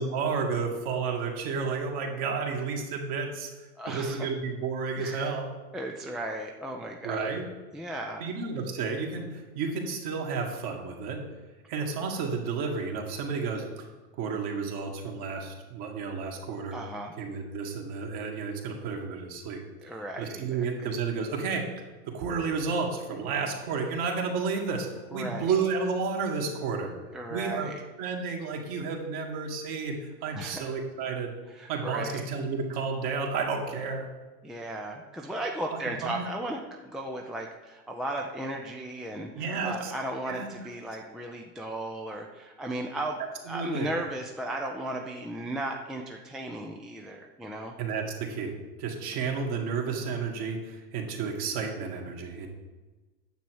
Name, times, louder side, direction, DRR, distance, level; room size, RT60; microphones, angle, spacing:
voice 1, 0.0-3.5 3.9-5.5 7.0-7.4 8.2-11.2 11.7-13.9 14.2-16.8 17.2-19.9 20.2-21.7 22.1-26.9 27.3-27.7 28.0-31.3 31.7-34.1 36.0-36.2 39.4-39.9 40.3-40.5 43.5-43.9 47.8-48.5 48.8-52.5, right 5 dB, 45° right, 1 dB, 2.2 m, -31 dB
voice 2, 3.8-4.3 4.9-5.3 5.7-7.4 7.7-8.3 16.7-17.1 19.8-20.9 25.1-25.5 27.1-27.8 30.3-30.7 31.5-32.2 34.4-43.2 43.5-47.7, right 1 dB, ahead, 1 dB, 0.4 m, -36 dB
9.3 x 7.1 x 4.7 m, 1.2 s
hypercardioid pair, 95°, 49 cm